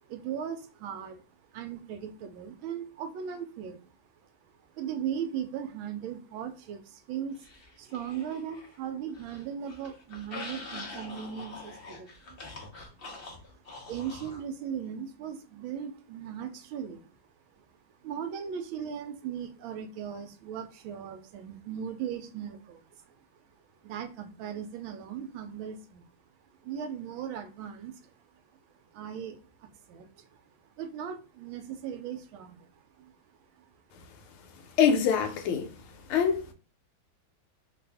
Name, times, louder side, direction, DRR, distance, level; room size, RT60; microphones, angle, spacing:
voice 1, 0.0-1.2 1.5-3.9 4.7-7.4 7.8-12.4 12.9-13.0 13.3-17.1 17.6-17.7 18.0-23.1 23.8-26.0 26.6-28.1 28.9-30.4 30.8-32.7 33.0-33.1 33.6-33.7, right 8 dB, 80° right, 1.3 m, -38 dB
sound 1, 7.4-8.8 9.1-14.4, left 3 dB, 65° left, 0.5 m, -44 dB
voice 2, 34.8-35.7 36.1-36.5, left 7 dB, 85° left, 1.5 m, -24 dB
3.4 x 2.5 x 3.3 m
omnidirectional pair, 2.3 m